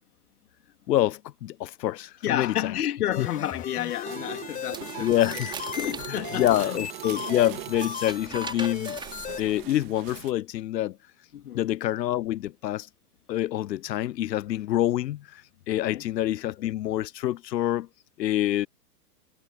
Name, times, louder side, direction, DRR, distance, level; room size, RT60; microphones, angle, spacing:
voice 1, 0.9-2.7 3.2-3.3 5.0-5.6 6.3-9.0 9.4-11.0 11.5-12.9 13.3-15.4 15.7-17.9 18.2-18.7, left 13 dB, 85° left, 0.6 m, -26 dB
voice 2, 2.2-5.4 5.8-6.8 11.3-11.6 15.9-16.0, left 12 dB, 65° left, 3.0 m, -31 dB
sound 1, 3.1-9.4, left 8 dB, 15° left, 3.8 m, -37 dB
sound 2, 4.0-10.3, right 26 dB, 40° right, 2.6 m, -40 dB
sound 3, 4.6-6.1 7.6-9.9, right 4 dB, 10° right, 5.2 m, -40 dB
hypercardioid pair, 130°, 49 cm